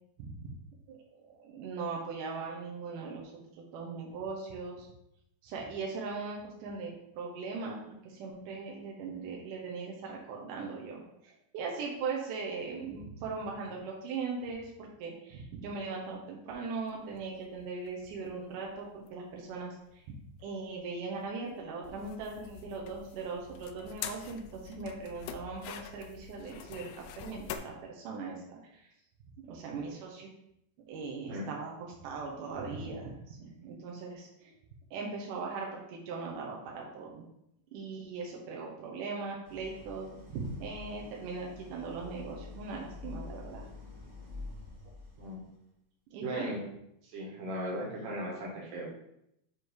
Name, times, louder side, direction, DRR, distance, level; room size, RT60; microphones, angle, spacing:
voice 1, 0.2-0.6 0.9-4.9 5.4-20.1 20.4-26.9 27.2-28.9 29.4-30.3 30.9-34.5 34.9-37.2 37.7-43.7 46.1-46.4, right 4 dB, 75° right, -1 dB, 1.9 m, -39 dB
sound 1, 16.8-27.6, left 9 dB, 80° left, 2.2 m, -46 dB
Idling, 39.4-45.5, left 3 dB, 35° right, 1.2 m, -47 dB
voice 2, 46.2-46.6 47.0-48.9, right 1 dB, 60° right, -3 dB, 2.8 m, -37 dB
7.6 x 3.2 x 4.6 m, 0.80 s
omnidirectional pair, 4.7 m